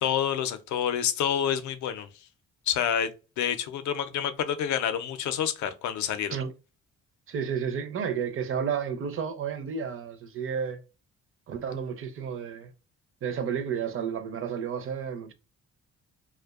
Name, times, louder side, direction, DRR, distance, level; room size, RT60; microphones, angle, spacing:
voice 1, 0.0-2.1 2.7-6.4, left 9 dB, 70° left, 0.5 m, -28 dB
voice 2, 7.3-10.8 11.5-12.7 13.2-15.3, right 7 dB, 45° right, 0.5 m, -31 dB
2.4 x 2.1 x 2.3 m
cardioid pair, 90°, 30 cm